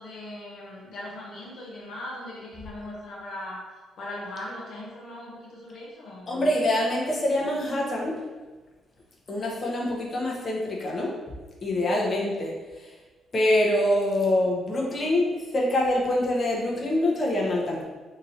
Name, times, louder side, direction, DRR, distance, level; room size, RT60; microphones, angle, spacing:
voice 1, 0.0-3.7 4.0-6.3, left 1 dB, 70° left, -2 dB, 0.7 m, -39 dB
voice 2, 6.3-8.2 9.3-11.1 11.6-12.5 13.3-17.8, left 1 dB, 40° left, -2 dB, 0.8 m, -25 dB
2.9 x 2.6 x 4.2 m, 1.3 s
cardioid pair, 90°, 0 cm